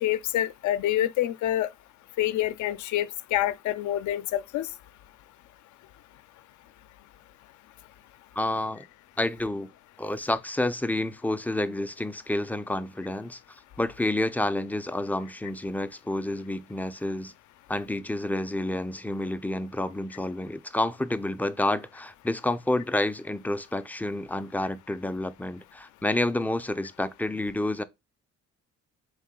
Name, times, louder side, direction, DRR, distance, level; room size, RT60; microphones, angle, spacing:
voice 1, 0.0-1.7 2.2-4.7, left 13 dB, 75° left, 0.5 m, -27 dB
voice 2, 8.3-8.9 9.2-9.7 10.0-17.3 17.7-27.8, left 1 dB, 5° left, 0.3 m, -29 dB
3.8 x 3.7 x 3.6 m
cardioid pair, 90°, 30 cm